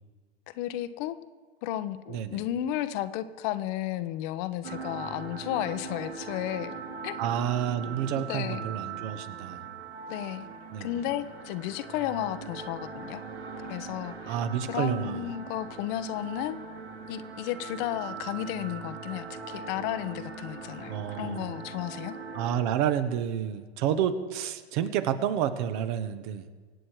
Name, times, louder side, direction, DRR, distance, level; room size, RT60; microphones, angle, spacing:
voice 1, 0.5-1.2 1.6-6.7 7.0-7.2 8.1-8.7 10.1-10.5 10.8-13.2 13.7-16.6 17.1-22.2, left 12 dB, 50° left, 11 dB, 1.1 m, -33 dB
voice 2, 2.1-2.4 7.2-9.6 10.7-10.9 14.3-15.3 20.9-21.5 22.3-26.4, right 9 dB, 50° right, 10 dB, 1.5 m, -29 dB
sound 1, 4.6-22.6, right 5 dB, 90° right, 2.0 m, -41 dB
24.5 x 8.9 x 4.8 m, 1.5 s
hypercardioid pair, 105°, 32 cm